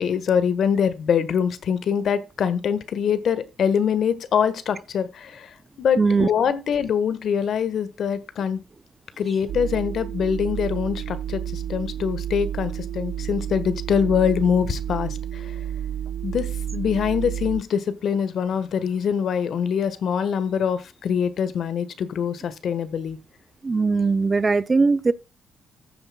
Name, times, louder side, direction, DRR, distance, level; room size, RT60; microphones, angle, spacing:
voice 1, 0.0-8.6 9.2-15.5 16.2-23.2, left 7 dB, 65° left, 1.4 m, -24 dB
voice 2, 6.0-6.3 23.6-25.1, right 4 dB, 25° right, 0.5 m, -20 dB
sound 1, 9.5-17.6, right 10 dB, 80° right, 0.4 m, -30 dB
14.5 x 7.8 x 2.3 m
cardioid pair, 90°, 0 cm